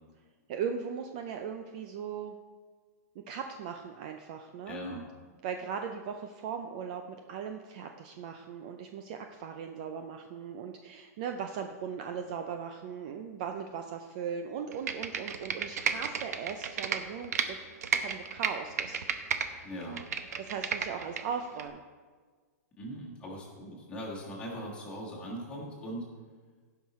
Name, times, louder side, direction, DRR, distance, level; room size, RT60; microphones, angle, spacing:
voice 1, 0.5-2.4 3.3-4.8 5.4-17.6 18.0-19.0 20.4-21.8, right 7 dB, 30° right, 5 dB, 0.4 m, -38 dB
voice 2, 4.7-5.0 19.6-20.0 22.8-26.0, equal, 10° left, -4 dB, 1.6 m, -40 dB
Computer keyboard, 14.7-17.5 17.8-19.5 19.8-21.2 21.6-21.7, right 7 dB, 70° right, 0.8 m, -32 dB
15.5 x 5.7 x 4.2 m, 1.5 s
supercardioid pair, 180°, 9 cm